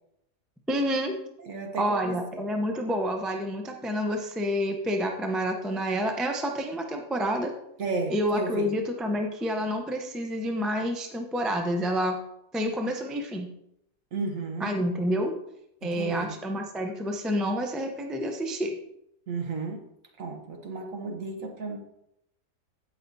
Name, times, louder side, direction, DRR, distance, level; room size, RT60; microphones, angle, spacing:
voice 1, 0.7-1.2 1.8-7.5 8.1-12.2 12.5-13.5 14.6-15.3 15.8-18.7, equal, ahead, 3 dB, 0.3 m, -28 dB
voice 2, 1.4-2.5 7.8-8.7 14.1-14.7 15.8-16.3 19.3-19.8 20.2-21.8, right 3 dB, 55° right, 4 dB, 1.4 m, -33 dB
16.0 x 5.8 x 2.7 m, 0.80 s
omnidirectional pair, 1.8 m